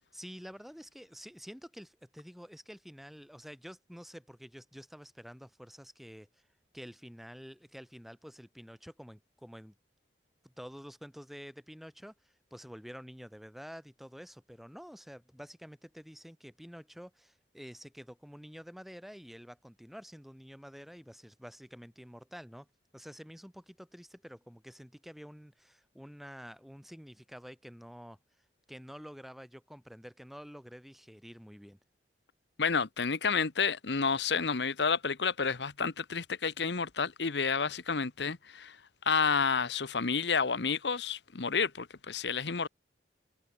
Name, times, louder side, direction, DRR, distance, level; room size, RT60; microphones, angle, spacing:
voice 1, 0.1-6.3 6.7-9.7 10.4-22.7 22.9-28.2 28.7-31.8, equal, ahead, 3.4 m, -49 dB
voice 2, 32.6-38.8 39.0-42.7, left 5 dB, 75° left, 1.0 m, -30 dB
head